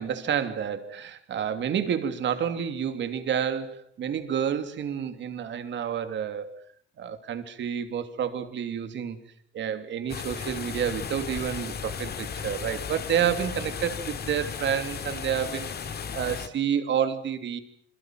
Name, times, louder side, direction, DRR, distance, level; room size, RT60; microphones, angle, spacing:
voice 1, 0.0-6.6 7.0-9.2 9.5-15.7 16.1-17.6, right 8 dB, 65° right, 10 dB, 2.9 m, -29 dB
sound 1, 10.1-16.5, left 6 dB, 55° left, 2.6 m, -35 dB
28.0 x 22.0 x 7.6 m, 0.63 s
cardioid pair, 90°, 20 cm